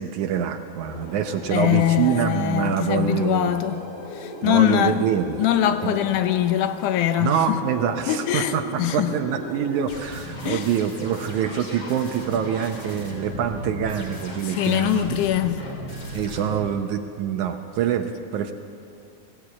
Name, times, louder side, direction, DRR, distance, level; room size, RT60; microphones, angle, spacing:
voice 1, 0.0-3.6 4.4-5.3 5.8-6.0 7.2-15.2 16.1-18.5, right 8 dB, 75° right, 2.2 m, -25 dB
sound 1, 0.8-16.6, equal, 40° left, 3.7 m, -37 dB
voice 2, 1.5-3.8 4.1-5.0 5.4-7.6 8.1-9.1 10.4-10.7 14.4-15.6, left 11 dB, 80° left, 2.3 m, -22 dB
19.5 x 16.0 x 8.5 m
omnidirectional pair, 3.6 m